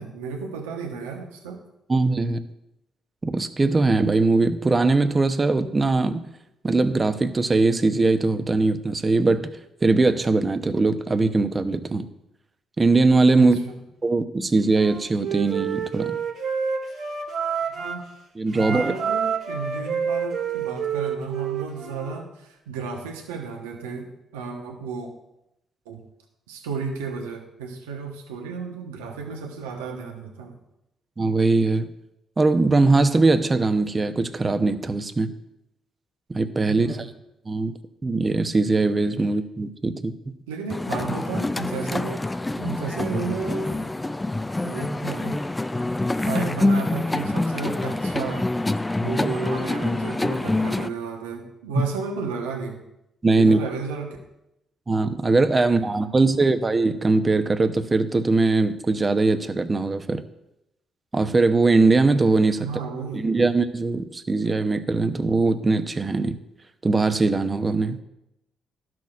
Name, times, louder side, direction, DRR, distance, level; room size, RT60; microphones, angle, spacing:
voice 1, 0.0-1.6 13.3-13.7 17.7-18.0 18.5-25.1 25.9-26.0 26.5-30.6 36.6-37.1 40.5-42.3 42.6-43.9 44.6-45.4 46.1-52.8 53.4-54.2 55.6-55.9 62.6-63.3, right 5 dB, 90° right, 1 dB, 1.1 m, -33 dB
voice 2, 1.9-2.4 3.2-6.2 6.6-9.5 9.8-12.1 12.8-13.6 14.0-16.2 18.4-18.9 31.2-31.9 32.4-35.3 36.3-37.0 37.5-37.7 38.0-40.4 51.8-51.9 53.2-53.6 54.9-60.2 61.1-62.7 63.1-66.4 66.8-68.0, right 3 dB, 30° right, 9 dB, 0.8 m, -21 dB
Wind instrument woodwind instrument, 14.7-18.0 18.5-22.2, right 6 dB, 65° right, 1.8 m, -28 dB
sound 1, 40.7-50.9, left 2 dB, 20° left, 0.4 m, -26 dB
13.0 x 6.1 x 2.5 m, 0.87 s
hypercardioid pair, 45°, 0 cm